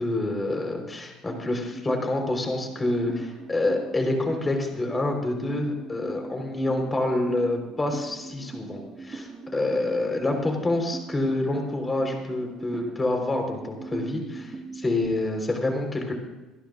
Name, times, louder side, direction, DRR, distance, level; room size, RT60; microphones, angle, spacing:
voice 1, 0.0-16.1, left 2 dB, 20° left, 3 dB, 4.3 m, -27 dB
sound 1, 1.3-15.1, right 4 dB, 30° right, 1.9 m, -40 dB
27.5 x 11.5 x 2.6 m, 1.1 s
supercardioid pair, 85°, 0 cm